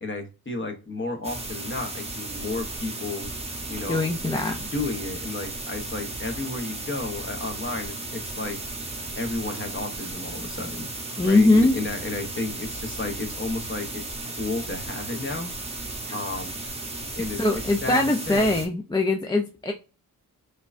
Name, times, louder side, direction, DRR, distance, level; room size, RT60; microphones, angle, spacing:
voice 1, 0.0-3.3 3.7-4.1 4.6-8.6 9.1-10.9 11.2-15.5 16.1-16.5 17.1-18.5, left 2 dB, 30° left, 4 dB, 0.8 m, -32 dB
sound 1, 1.2-18.7, right 2 dB, 15° right, 0.8 m, -35 dB
voice 2, 3.9-4.6 11.2-11.8 16.0-16.1 17.4-19.7, left 2 dB, 10° left, 2 dB, 0.4 m, -21 dB
4.4 x 2.3 x 2.5 m, 0.31 s
wide cardioid pair, 95°, 38 cm